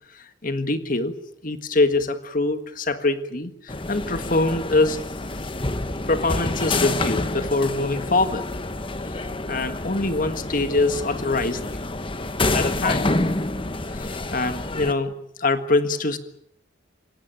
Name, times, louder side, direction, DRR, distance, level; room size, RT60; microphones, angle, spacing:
voice 1, 0.1-1.1 1.4-5.0 6.1-8.4 9.1-11.6 12.5-13.1 13.9-15.1 15.4-16.2, left 2 dB, 40° left, 10 dB, 1.7 m, -24 dB
sound 1, 3.7-14.9, left 2 dB, 25° left, 1.2 m, -28 dB
27.5 x 17.0 x 9.1 m, 0.75 s
head